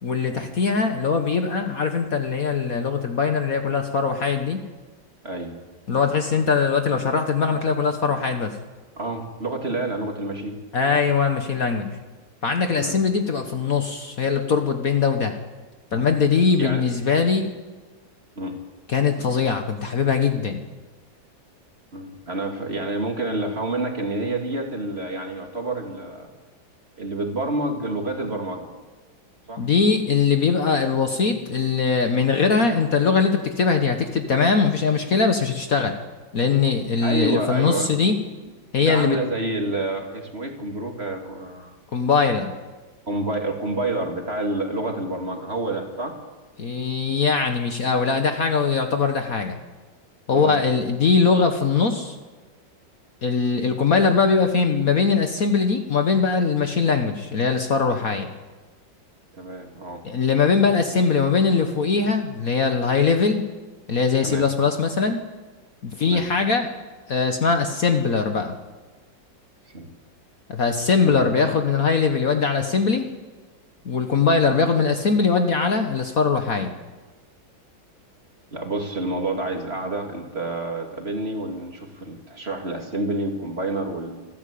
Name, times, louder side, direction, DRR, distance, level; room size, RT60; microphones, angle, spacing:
voice 1, 0.0-4.6 5.9-8.5 10.7-11.9 12.4-15.3 15.9-17.5 18.9-20.6 29.6-36.0 36.3-38.1 38.7-39.2 41.9-42.5 46.6-49.6 50.3-52.1 53.2-58.3 60.0-63.4 63.9-65.2 65.8-66.7 67.1-68.5 70.5-73.1 73.8-76.7, left 5 dB, 50° left, 6 dB, 1.5 m, -21 dB
voice 2, 5.2-5.6 9.0-10.6 10.9-11.0 12.8-13.0 15.9-16.1 16.6-17.0 18.4-18.5 21.9-26.3 27.0-28.7 29.5-29.7 37.0-37.9 38.8-41.7 43.1-46.1 50.3-50.6 59.3-60.0 64.2-64.4 66.0-66.2 69.7-69.9 71.1-71.3 78.5-84.3, right 2 dB, 30° right, 3 dB, 2.6 m, -28 dB
26.5 x 12.5 x 8.5 m, 1.3 s
omnidirectional pair, 2.1 m